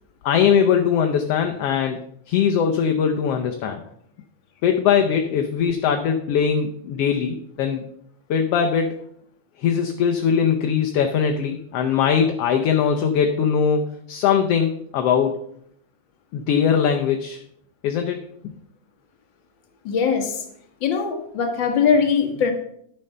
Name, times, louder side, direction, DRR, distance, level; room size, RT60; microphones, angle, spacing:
voice 1, 0.2-2.0 2.3-3.8 4.6-7.8 8.3-9.0 9.6-15.4 16.3-17.4 17.8-18.5, left 7 dB, 70° left, 4 dB, 1.6 m, -21 dB
voice 2, 19.8-20.4 20.8-22.5, left 6 dB, 45° left, 4 dB, 1.9 m, -21 dB
11.0 x 6.8 x 5.5 m, 0.69 s
omnidirectional pair, 3.3 m